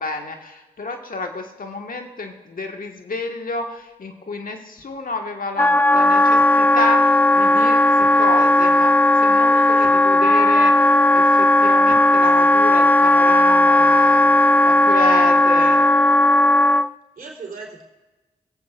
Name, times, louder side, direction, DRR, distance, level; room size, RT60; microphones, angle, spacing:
voice 1, 0.0-8.9 9.2-9.8 10.0-10.7 11.1-14.3 14.6-15.8, left 3 dB, 60° left, 3 dB, 1.5 m, -29 dB
sound 1, 4.8-4.9 6.4-6.7 8.0-8.6 9.8-10.6 11.9-12.8, left 6 dB, 80° left, 1.7 m, -39 dB
Wind instrument woodwind instrument, 5.6-16.9, left 1 dB, 10° left, 0.4 m, -15 dB
voice 2, 9.4-9.9 14.3-14.7 17.2-17.8, right 4 dB, 65° right, -2 dB, 3.5 m, -38 dB
23.5 x 8.4 x 2.5 m, 1.2 s
supercardioid pair, 40°, 16 cm